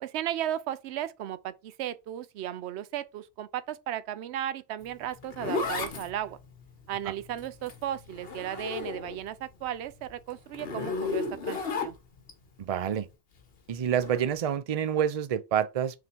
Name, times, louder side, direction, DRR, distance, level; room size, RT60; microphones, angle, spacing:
voice 1, 0.0-6.4 6.9-12.0, right 11 dB, 80° right, 0.8 m, -35 dB
Zipper (clothing), 4.8-9.3 9.7-12.3 13.9-14.2, left 4 dB, 65° left, 1.3 m, -34 dB
voice 2, 12.6-13.1 13.7-16.0, right 9 dB, 45° right, 0.5 m, -28 dB
5.8 x 3.8 x 4.5 m
omnidirectional pair, 1.1 m